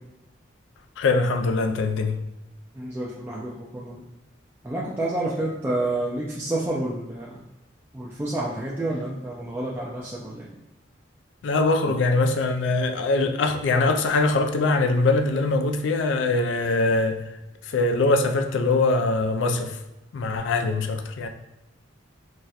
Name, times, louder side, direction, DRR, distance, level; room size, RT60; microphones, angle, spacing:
voice 1, 1.0-2.1 11.4-17.2 17.7-19.7 20.1-21.3, left 3 dB, 75° left, 6 dB, 0.3 m, -22 dB
voice 2, 2.7-3.9 4.6-7.4 7.9-10.5, right 2 dB, 10° right, -6 dB, 0.4 m, -29 dB
4.0 x 2.1 x 2.4 m, 0.97 s
head